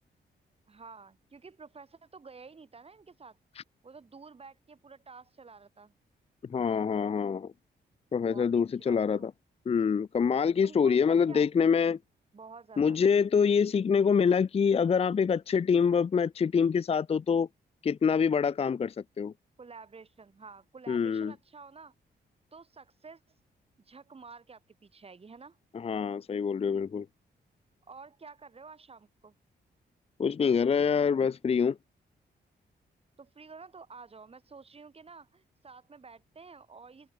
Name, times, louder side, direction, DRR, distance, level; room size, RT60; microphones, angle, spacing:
voice 1, 0.7-3.4 3.8-5.9 8.3-9.3 10.6-12.0 12.3-13.0 19.6-21.9 22.5-23.2 23.8-25.6 27.9-29.4 33.2-37.1, right 4 dB, 35° right, 6.8 m, -50 dB
voice 2, 6.5-7.5 8.1-9.3 9.7-12.0 12.8-17.5 17.8-19.3 20.9-21.3 25.7-27.1 30.2-31.8, left 6 dB, 35° left, 0.5 m, -25 dB
open air
wide cardioid pair, 130°, 18 cm